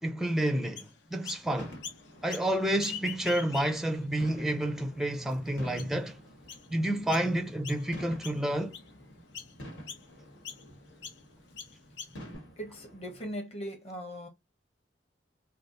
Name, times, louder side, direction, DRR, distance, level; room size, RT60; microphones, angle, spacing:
voice 1, 0.0-1.8 2.2-6.2 6.7-8.8, right 1 dB, ahead, 0.4 m, -29 dB
Chirp tweet, 0.8-1.4 1.8-2.5 2.8-4.0 4.5-4.6 5.3-5.4 5.8-6.1 6.5-6.7 7.1-7.3 7.6-8.0 8.2-8.9 9.3-9.5 9.9-10.0 10.5-10.6 11.0-11.2 11.6-12.4, left 7 dB, 75° left, 0.8 m, -42 dB
sound 1, 1.6-13.3, equal, 90° left, 1.7 m, -49 dB
voice 2, 12.6-14.3, equal, 35° left, 1.3 m, -39 dB
3.3 x 2.3 x 3.9 m
head